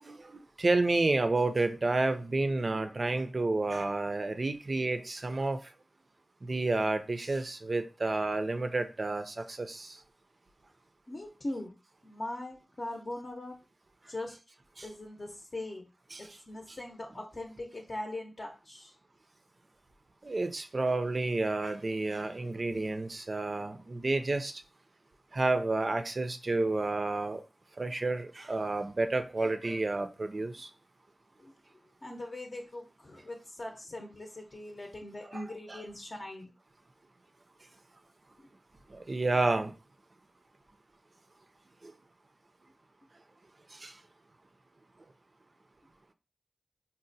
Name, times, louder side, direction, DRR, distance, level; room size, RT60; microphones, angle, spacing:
voice 1, 0.0-5.6 6.4-10.0 14.8-14.9 16.1-16.4 20.2-24.5 25.3-27.4 27.8-30.7 35.3-35.4 35.7-35.8 38.9-39.7 41.8-41.9 43.7-43.9, right 2 dB, 55° right, 0.4 m, -30 dB
voice 2, 11.1-11.7 12.0-13.5 14.1-14.4 14.8-15.9 16.2-18.9 31.4-31.5 32.0-36.5, left 1 dB, 50° left, 0.6 m, -41 dB
4.0 x 2.1 x 2.6 m
cardioid pair, 40°, 0 cm